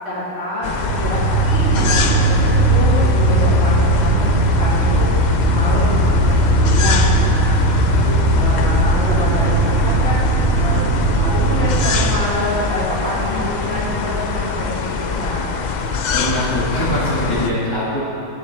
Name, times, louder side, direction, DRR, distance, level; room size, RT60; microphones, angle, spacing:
voice 1, 0.0-10.2 10.6-10.8 11.2-15.3, equal, 50° left, -7 dB, 2.2 m, -26 dB
sound 1, 0.6-17.5, left 5 dB, 75° left, 0.4 m, -24 dB
sound 2, 0.9-12.2, right 2 dB, 50° right, 0.9 m, -17 dB
voice 2, 16.1-18.0, left 1 dB, 15° left, -7 dB, 1.5 m, -22 dB
10.0 x 8.8 x 3.3 m, 2.9 s
omnidirectional pair, 1.4 m